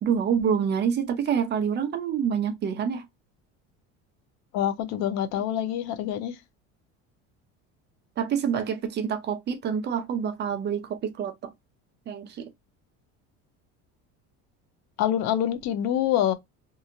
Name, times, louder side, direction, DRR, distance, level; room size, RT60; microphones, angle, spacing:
voice 1, 0.0-3.1 8.2-11.5 12.1-12.5, right 7 dB, 35° right, 0.6 m, -27 dB
voice 2, 4.5-6.3 15.0-16.3, left 11 dB, 65° left, 0.6 m, -26 dB
2.8 x 2.6 x 2.4 m
cardioid pair, 145°, 30 cm